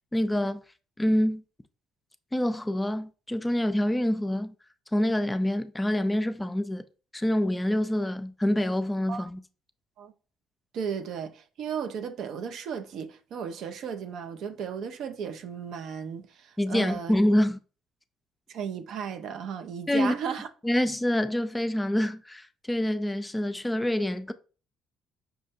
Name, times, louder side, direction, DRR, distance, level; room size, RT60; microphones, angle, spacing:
voice 1, 0.1-0.6 1.0-1.4 2.3-4.5 4.9-6.8 7.1-9.4 16.6-17.6 19.9-20.1 20.6-24.3, left 1 dB, 15° left, 0.3 m, -26 dB
voice 2, 10.7-17.1 18.5-20.5, right 7 dB, 70° right, 0.4 m, -35 dB
5.5 x 2.1 x 2.7 m
supercardioid pair, 65°, 0 cm